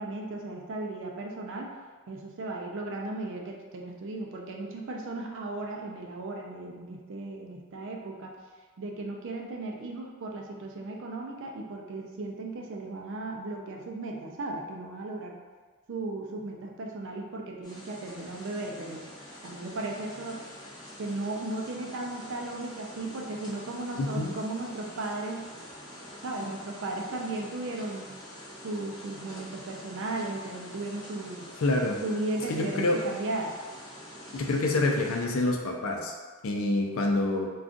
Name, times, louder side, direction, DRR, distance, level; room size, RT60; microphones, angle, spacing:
voice 1, 0.0-1.7 2.1-8.4 8.8-15.4 15.9-19.0 19.4-20.4 21.0-25.5 26.2-28.1 28.6-31.5 32.0-33.5, right 2 dB, 60° right, 0 dB, 0.4 m, -36 dB
sound 1, 17.6-35.2, equal, 20° left, 0.6 m, -46 dB
voice 2, 24.0-24.3 31.6-32.0 32.5-33.0 34.3-36.1 36.4-37.5, left 2 dB, 65° left, 2 dB, 0.4 m, -27 dB
2.5 x 2.3 x 3.7 m, 1.4 s
head